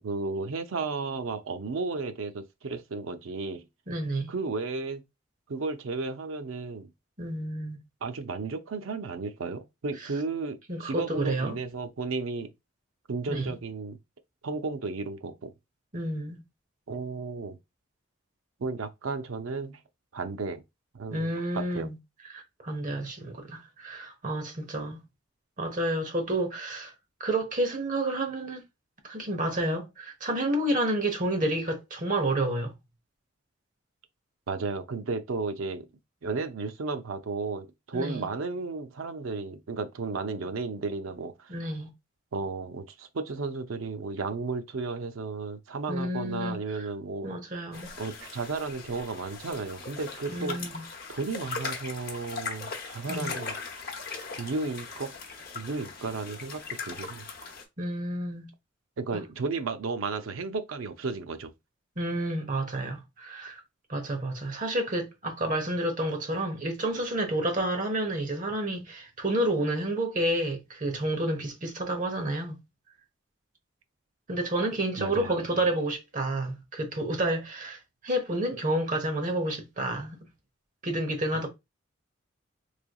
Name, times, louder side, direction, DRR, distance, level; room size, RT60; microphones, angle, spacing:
voice 1, 0.0-3.6 4.3-5.0 5.5-6.9 8.0-12.5 13.1-14.0 14.4-15.5 16.9-17.6 18.6-19.8 20.1-20.6 20.9-21.3 21.5-21.9 34.5-35.9 36.2-41.5 42.3-47.3 48.0-50.6 51.1-53.6 54.4-55.1 55.5-57.3 59.0-61.5 75.0-75.5, right 4 dB, 90° right, 0.6 m, -33 dB
voice 2, 3.9-4.3 7.2-7.8 10.7-11.6 13.3-13.6 15.9-16.4 21.1-22.0 22.3-25.0 25.6-26.9 27.2-28.6 29.0-32.7 37.9-38.3 41.5-41.9 45.9-46.9 47.2-47.9 50.3-50.8 53.1-53.3 57.8-58.5 59.1-59.2 62.0-63.6 63.9-72.6 74.3-77.8 78.0-80.2 80.8-81.5, right 1 dB, 40° right, 0.9 m, -30 dB
sound 1, 47.7-57.6, left 5 dB, 50° left, 0.8 m, -39 dB
3.6 x 3.3 x 2.3 m
head